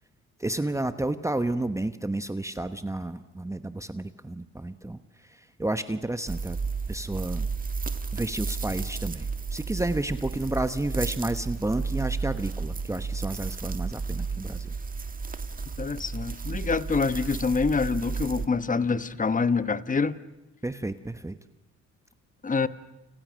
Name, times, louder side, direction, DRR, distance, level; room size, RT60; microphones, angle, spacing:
voice 1, 0.4-6.6 6.9-7.5 8.1-14.7 20.6-21.4, right 2 dB, 10° right, 10 dB, 1.1 m, -31 dB
sound 1, 6.3-18.5, right 4 dB, 30° right, 1.8 m, -33 dB
voice 2, 15.8-20.2 22.4-22.7, left 4 dB, 25° left, 13 dB, 1.3 m, -26 dB
29.5 x 29.5 x 6.4 m, 0.97 s
cardioid pair, 90°, 30 cm